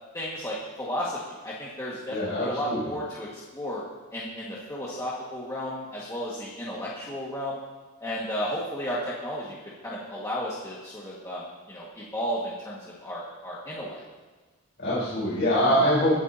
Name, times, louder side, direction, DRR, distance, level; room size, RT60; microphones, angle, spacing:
voice 1, 0.1-3.8 4.1-7.6 8.0-9.5 9.8-14.0, equal, 15° left, -7 dB, 1.8 m, -33 dB
voice 2, 2.1-2.8 14.8-16.2, equal, 50° left, -10 dB, 4.1 m, -24 dB
21.0 x 9.2 x 2.8 m, 1.3 s
head